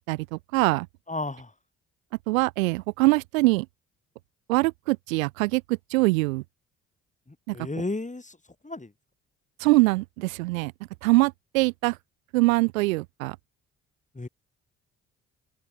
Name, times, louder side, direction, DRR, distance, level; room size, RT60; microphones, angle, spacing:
voice 1, 0.1-0.9 2.3-3.7 4.5-6.4 7.5-7.6 9.6-10.7 11.0-12.0 12.3-13.4, right 23 dB, 85° right, 0.8 m, -23 dB
voice 2, 1.1-1.5 7.5-8.4 8.6-8.9 14.1-14.3, left 2 dB, 20° left, 6.2 m, -32 dB
open air
hypercardioid pair, 45°, 39 cm